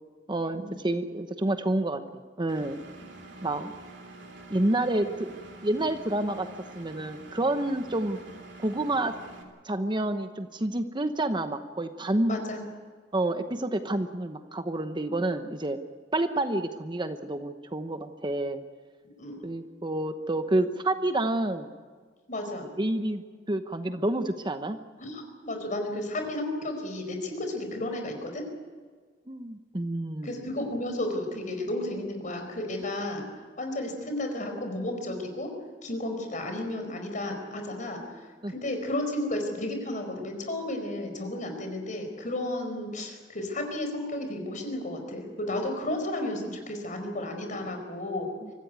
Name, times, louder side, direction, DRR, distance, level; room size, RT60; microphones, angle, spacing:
voice 1, 0.3-2.0 2.4-2.8 3.4-3.7 4.5-5.3 5.6-6.5 6.7-8.2 8.6-9.2 9.6-12.4 13.1-15.8 16.1-18.6 19.4-21.7 22.8-24.8 29.3-30.4 38.4-38.5 48.4-48.5, right 1 dB, 25° right, 8 dB, 0.9 m, -29 dB
Engine, 2.5-9.4, right 2 dB, 70° right, 3.5 m, -47 dB
voice 2, 12.2-12.7 19.2-19.4 22.3-22.7 25.0-28.5 30.2-33.2 33.6-35.5 35.8-48.3, left 1 dB, 45° left, 5 dB, 4.7 m, -33 dB
24.5 x 15.0 x 9.4 m, 1.5 s
head